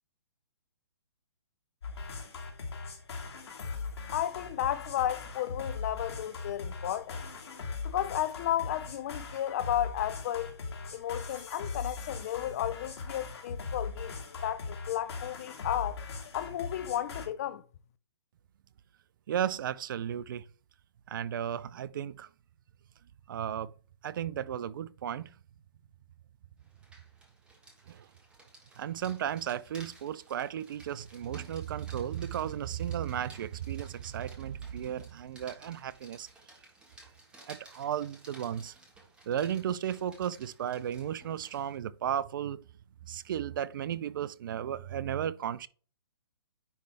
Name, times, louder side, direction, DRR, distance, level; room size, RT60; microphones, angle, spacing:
sound 1, 1.8-17.3, left 4 dB, 70° left, 2.1 m, -40 dB
voice 1, 4.1-7.2 7.8-10.5 10.9-14.2 14.4-16.0 16.3-17.6, left 12 dB, 35° left, 0.5 m, -33 dB
voice 2, 19.3-20.5 21.1-22.3 23.3-23.7 24.0-25.3 27.9-28.1 28.8-36.3 37.5-38.7 39.3-42.6 43.1-45.7, right 10 dB, 50° right, 0.4 m, -34 dB
Rain, 26.6-41.8, right 1 dB, 5° right, 1.3 m, -56 dB
9.8 x 3.3 x 3.3 m
hypercardioid pair, 150°, 14 cm